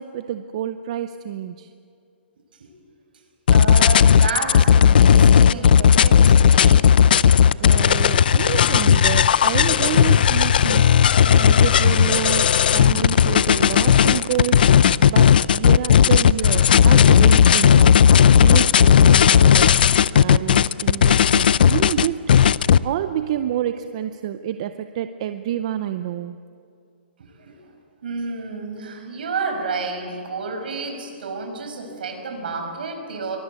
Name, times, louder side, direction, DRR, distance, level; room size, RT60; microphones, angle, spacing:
voice 1, 0.0-1.7 7.6-10.8 11.3-18.1 18.4-19.8 20.1-22.3 22.8-26.4, right 11 dB, 30° right, 10 dB, 0.6 m, -28 dB
sound 1, 3.5-22.8, left 8 dB, 55° left, 0.5 m, -14 dB
voice 2, 3.5-6.9 27.4-27.6 28.0-33.4, right 4 dB, 60° right, 4 dB, 5.5 m, -30 dB
24.0 x 20.0 x 8.3 m, 2.4 s
hypercardioid pair, 175°, 6 cm